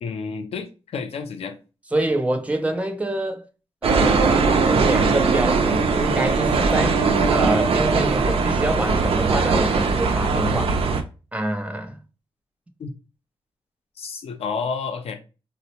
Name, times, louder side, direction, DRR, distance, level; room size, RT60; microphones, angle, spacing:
voice 1, 0.0-1.6 12.8-12.9 14.0-15.2, left 5 dB, 80° left, 0.5 m, -30 dB
voice 2, 1.9-3.5 3.8-7.0 7.3-10.7 11.3-12.0, right 1 dB, 15° right, 0.6 m, -26 dB
sound 1, 3.8-11.0, right 4 dB, 75° right, 0.4 m, -20 dB
4.1 x 2.0 x 2.8 m
wide cardioid pair, 120°, 10 cm